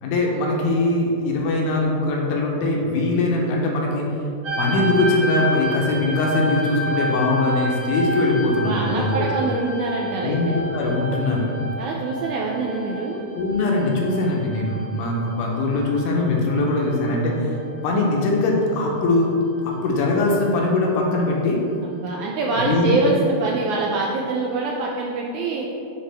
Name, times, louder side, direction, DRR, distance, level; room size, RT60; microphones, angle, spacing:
voice 1, 0.0-4.0 4.6-9.3 10.2-11.5 13.3-17.5 17.8-19.3 19.8-21.6 22.6-23.0, left 2 dB, 75° left, -2 dB, 2.2 m, -21 dB
sound 1, 4.4-17.4 17.7-18.5 19.2-19.4, equal, 50° right, 2.3 m, -30 dB
voice 2, 8.5-10.6 11.8-13.2 21.8-25.7, right 3 dB, 85° right, -2 dB, 1.7 m, -25 dB
9.5 x 3.5 x 3.3 m, 2.8 s
omnidirectional pair, 3.8 m